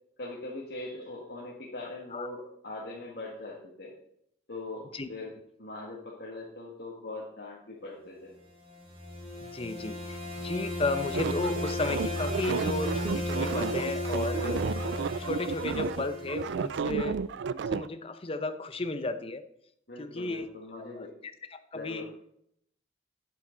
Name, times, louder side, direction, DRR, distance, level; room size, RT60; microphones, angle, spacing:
voice 1, 0.2-3.9 4.5-5.3 5.6-8.3 19.9-21.1 21.7-22.0, left 2 dB, 60° left, -4 dB, 1.9 m, -41 dB
sound 1, 8.6-16.8, left 1 dB, 35° right, 4.1 m, -35 dB
voice 2, 9.4-14.7 15.2-17.2 17.5-19.4 20.0-20.5 20.8-21.1 21.7-22.2, left 2 dB, 30° left, 10 dB, 0.7 m, -34 dB
sound 2, 11.1-17.9, right 6 dB, 75° right, 0.4 m, -32 dB
11.0 x 7.8 x 3.9 m, 0.72 s
head